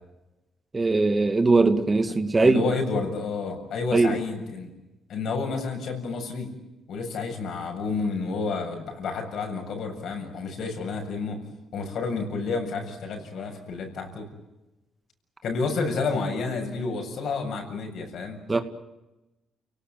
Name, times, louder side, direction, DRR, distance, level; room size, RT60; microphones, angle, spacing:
voice 1, 0.7-2.7 3.9-4.2 18.5-18.6, right 3 dB, 25° right, 2.3 m, -20 dB
voice 2, 2.4-4.7 5.1-6.5 6.9-11.4 11.7-14.3 15.4-18.4, left 4 dB, 70° left, 7.6 m, -30 dB
29.5 x 18.5 x 9.2 m
cardioid pair, 90°, 0 cm